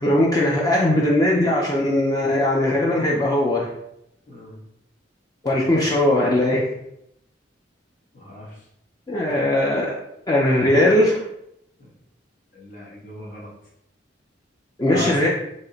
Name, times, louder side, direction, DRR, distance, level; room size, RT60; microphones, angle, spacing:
voice 1, 0.0-3.7 5.4-6.6 9.1-9.9 10.3-11.2 14.8-15.3, left 1 dB, 20° left, -4 dB, 0.4 m, -19 dB
voice 2, 4.3-4.6 8.1-8.6 12.5-13.5 14.9-15.3, left 1 dB, 45° left, -4 dB, 0.8 m, -35 dB
2.8 x 2.1 x 3.8 m, 0.77 s
head